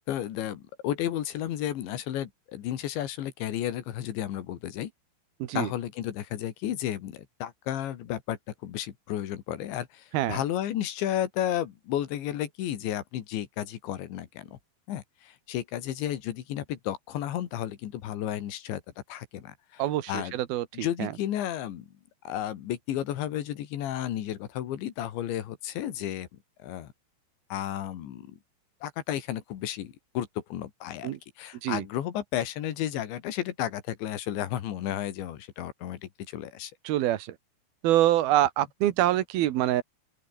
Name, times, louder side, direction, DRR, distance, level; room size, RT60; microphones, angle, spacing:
voice 1, 0.1-4.9 5.6-14.6 14.9-18.8 19.1-19.8 20.1-20.3 20.7-21.9 22.3-26.3 26.6-26.9 27.5-28.3 28.8-36.7, left 11 dB, 70° left, 4.2 m, -33 dB
voice 2, 19.8-21.1 31.0-31.2 31.6-31.8 36.8-37.3 37.8-39.8, right 13 dB, 65° right, 2.8 m, -25 dB
open air
omnidirectional pair, 5.7 m